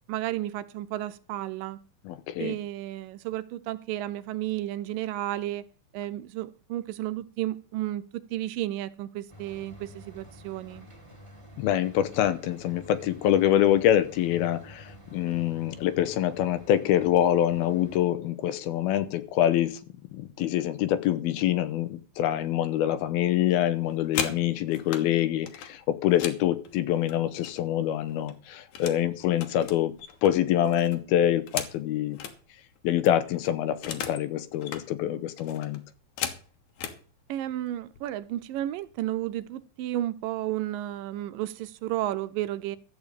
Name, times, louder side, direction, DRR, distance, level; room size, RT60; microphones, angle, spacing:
voice 1, 0.1-1.8 2.4-5.6 5.9-8.0 8.3-10.9 37.3-42.8, right 14 dB, 80° right, 14 dB, 2.1 m, -32 dB
voice 2, 2.1-2.6 11.6-19.8 20.1-29.9 30.2-32.2 32.8-35.8, left 11 dB, 85° left, 12 dB, 2.7 m, -25 dB
sound 1, 9.3-18.0, equal, 10° right, 1.9 m, -49 dB
sound 2, 23.8-25.1 25.5-27.8 28.1-29.0 29.3-32.4 32.8-32.9 33.0-34.3 34.5-34.9 35.4-37.0 37.8-38.0 38.3-38.7 39.0-39.5, left 8 dB, 65° left, 2.4 m, -37 dB
13.5 x 5.2 x 8.3 m, 0.40 s
omnidirectional pair, 4.3 m